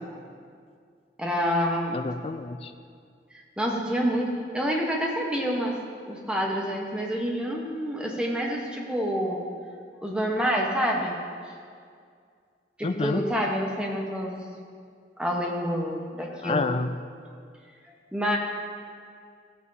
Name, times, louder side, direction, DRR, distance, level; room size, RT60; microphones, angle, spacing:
voice 1, 1.2-1.9 3.6-5.8 6.1-9.4 10.0-11.2 12.8-14.4 15.2-16.7 18.1-18.4, equal, 5° right, -1 dB, 1.0 m, -27 dB
voice 2, 1.9-2.7 12.8-13.2 16.4-16.9, left 3 dB, 35° left, 9 dB, 0.3 m, -28 dB
14.0 x 8.4 x 2.7 m, 2.2 s
head